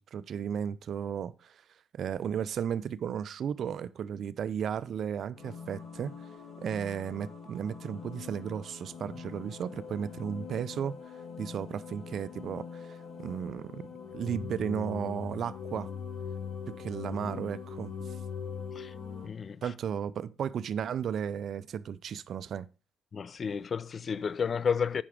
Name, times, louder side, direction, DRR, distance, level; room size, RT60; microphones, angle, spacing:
voice 1, 0.0-1.6 1.9-6.1 6.6-11.0 11.4-13.9 14.1-15.9 16.7-18.1 19.6-22.7, right 8 dB, 60° right, 0.4 m, -34 dB
sound 1, 5.4-19.3, left 6 dB, 70° left, 3.5 m, -42 dB
voice 2, 19.2-19.7 23.1-25.0, left 6 dB, 45° left, 0.4 m, -31 dB
8.7 x 5.8 x 4.9 m
cardioid pair, 90°, 0 cm